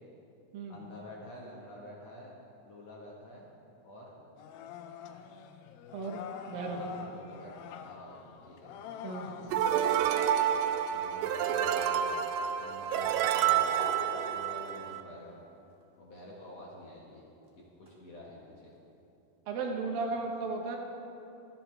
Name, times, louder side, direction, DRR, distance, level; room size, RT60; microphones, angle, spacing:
voice 1, 0.7-2.4 2.6-3.5 3.8-4.2 6.7-8.7 9.8-9.9 10.9-12.2 12.6-13.8 14.3-15.4 16.0-17.3 17.6-18.7 20.1-20.2, left 1 dB, 55° left, -4 dB, 2.1 m, -49 dB
sound 1, 4.4-9.8, left 7 dB, 80° left, 2.3 m, -45 dB
voice 2, 5.9-6.8 9.0-9.3 19.5-20.8, right 3 dB, 70° right, 1 dB, 2.8 m, -35 dB
sound 2, 9.5-15.0, right 10 dB, 85° right, 1.9 m, -29 dB
sound 3, 11.5-12.4 12.9-14.6 15.8-15.9 17.4-17.5 17.9-18.0, right 1 dB, 35° right, 0.5 m, -41 dB
25.5 x 9.0 x 3.3 m, 2.8 s
omnidirectional pair, 4.4 m